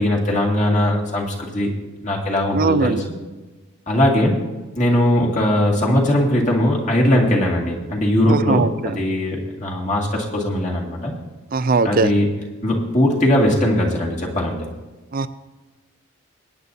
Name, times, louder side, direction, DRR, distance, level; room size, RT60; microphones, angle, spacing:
voice 1, 0.0-1.7 2.0-3.0 3.9-4.3 4.8-11.1 11.8-12.3 12.6-14.6, left 1 dB, 35° left, -2 dB, 2.0 m, -19 dB
voice 2, 2.5-3.0 8.3-9.0 11.5-12.1 15.1-15.3, right 4 dB, 45° right, 13 dB, 0.5 m, -20 dB
22.5 x 9.6 x 2.7 m, 1.2 s
head